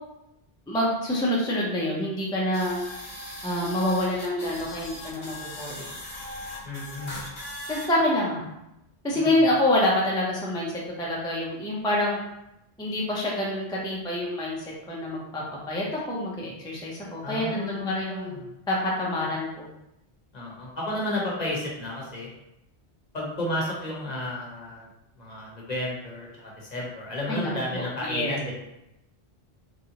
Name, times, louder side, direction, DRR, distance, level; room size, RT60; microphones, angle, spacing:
voice 1, 0.7-2.8 3.4-5.9 7.7-8.5 9.0-10.7 11.0-12.2 12.8-15.4 15.7-18.4 18.7-19.7 27.3-28.3, left 1 dB, 5° left, -5 dB, 0.4 m, -27 dB
sound 1, 2.5-7.9, left 1 dB, 85° left, 1.1 m, -39 dB
voice 2, 6.6-7.2 9.1-9.3 17.2-18.5 20.3-22.3 23.1-24.9 25.2-28.5, left 1 dB, 45° left, -4 dB, 0.8 m, -32 dB
3.1 x 2.6 x 2.8 m, 0.88 s
omnidirectional pair, 1.0 m